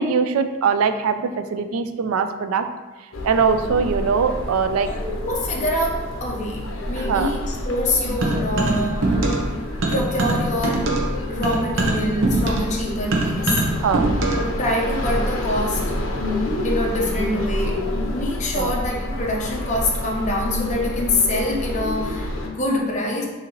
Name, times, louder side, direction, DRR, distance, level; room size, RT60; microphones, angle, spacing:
voice 1, 0.0-2.7 3.2-4.9 7.0-7.3 13.8-14.1 18.5-18.7, right 5 dB, 90° right, 9 dB, 0.4 m, -21 dB
sound 1, 3.1-22.5, left 1 dB, 70° left, 0.7 m, -28 dB
voice 2, 4.8-9.2 9.9-10.9 11.3-13.7 14.3-15.9 16.6-17.8 18.1-23.2, left 1 dB, 35° left, -2 dB, 0.8 m, -25 dB
sound 2, 8.2-9.5 9.8-14.5, right 2 dB, 65° right, 0.7 m, -22 dB
6.3 x 2.7 x 3.0 m, 1.2 s
head